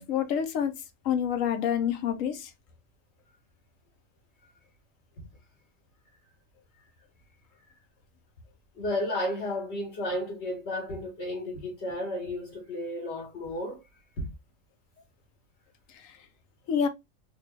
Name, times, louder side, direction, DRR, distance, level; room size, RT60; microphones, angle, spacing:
voice 1, 0.0-2.5 15.9-16.1 16.7-16.9, left 8 dB, 85° left, 1.1 m, -28 dB
voice 2, 8.7-13.8 14.2-14.3, left 1 dB, 55° left, 1.6 m, -33 dB
3.3 x 2.4 x 3.3 m
omnidirectional pair, 1.3 m